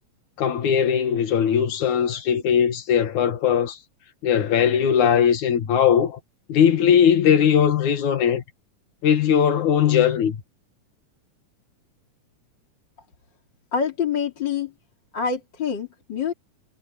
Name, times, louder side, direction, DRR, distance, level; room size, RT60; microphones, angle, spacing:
voice 1, 0.4-3.8 4.2-6.2 6.5-8.4 9.0-10.4, left 8 dB, 70° left, 3.1 m, -19 dB
voice 2, 13.7-14.7 15.1-16.3, left 6 dB, 35° left, 3.2 m, -26 dB
omnidirectional pair, 3.6 m